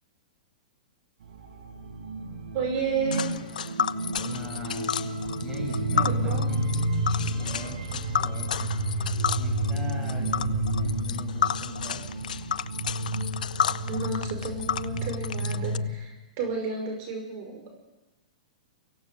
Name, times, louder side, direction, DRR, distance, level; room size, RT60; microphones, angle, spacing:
sound 1, 1.2-15.9, right 1 dB, 75° right, 5.0 m, -30 dB
voice 1, 2.5-3.3 5.9-6.5 13.9-17.7, right 4 dB, 45° right, 3 dB, 5.6 m, -32 dB
Tick, 3.1-15.8, left 8 dB, 80° left, 0.6 m, -31 dB
voice 2, 4.1-4.9 5.4-8.7 9.3-12.3, left 2 dB, 10° right, -1 dB, 7.0 m, -41 dB
24.5 x 16.5 x 6.9 m, 1.1 s
hypercardioid pair, 130°, 4 cm